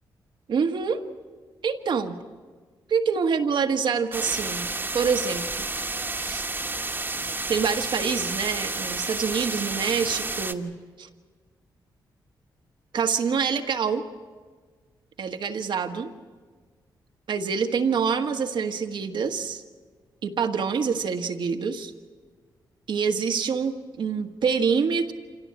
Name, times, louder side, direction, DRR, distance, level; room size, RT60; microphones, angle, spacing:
voice 1, 0.5-1.0 1.6-2.1 2.9-4.7 4.9-5.7 6.2-6.4 7.5-10.7 11.0-11.1 12.9-14.0 15.2-16.1 17.3-19.6 20.2-21.9 22.9-25.1, right 6 dB, 70° right, 6 dB, 1.5 m, -26 dB
sound 1, 4.1-10.5, right 3 dB, 25° right, 1.4 m, -31 dB
26.0 x 17.0 x 8.8 m, 1.5 s
cardioid pair, 75°, 8 cm